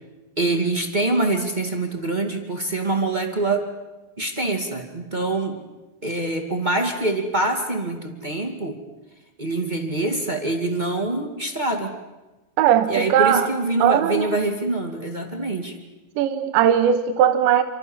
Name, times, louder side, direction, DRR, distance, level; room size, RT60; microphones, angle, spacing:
voice 1, 0.4-3.6 4.2-5.6 6.0-8.8 9.4-11.9 12.9-15.8, right 2 dB, 20° right, 4 dB, 1.2 m, -25 dB
voice 2, 12.6-13.5 13.8-14.4 16.2-17.6, right 10 dB, 85° right, 7 dB, 3.4 m, -18 dB
27.5 x 26.0 x 7.3 m, 1.1 s
omnidirectional pair, 5.0 m